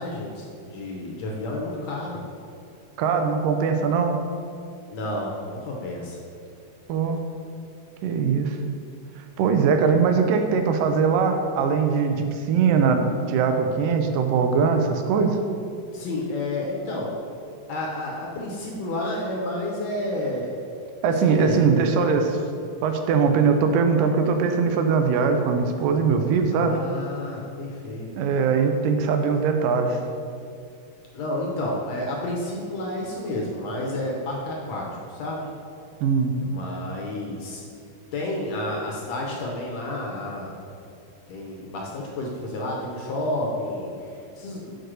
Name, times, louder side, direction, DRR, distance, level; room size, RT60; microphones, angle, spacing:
voice 1, 0.0-2.2 4.9-6.2 15.9-17.1 17.7-20.5 21.1-21.8 26.5-28.1 31.1-35.5 36.4-37.6 38.1-40.6 41.3-44.8, left 1 dB, 70° left, -2 dB, 1.8 m, -30 dB
voice 2, 3.0-4.1 6.9-7.2 8.0-8.6 9.4-15.4 21.0-22.4 22.8-26.7 28.2-30.0 36.0-36.3, right 5 dB, 90° right, 5 dB, 2.3 m, -21 dB
6.3 x 4.7 x 6.2 m, 2.4 s
omnidirectional pair, 3.8 m